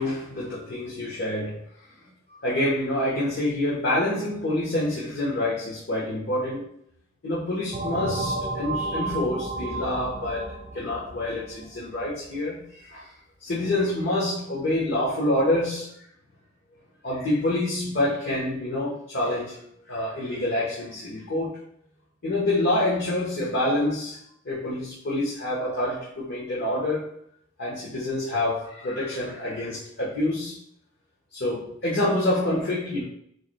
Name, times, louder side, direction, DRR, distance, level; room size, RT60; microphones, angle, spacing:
voice 1, 0.0-1.6 2.3-6.6 7.2-13.1 13.4-15.9 17.0-19.6 19.9-21.6 22.2-24.2 24.4-27.1 27.6-30.6 31.3-33.0, left 1 dB, 60° left, -7 dB, 1.3 m, -27 dB
sound 1, 7.7-12.1, right 2 dB, 35° right, 0.8 m, -32 dB
7.0 x 3.2 x 2.3 m, 0.69 s
head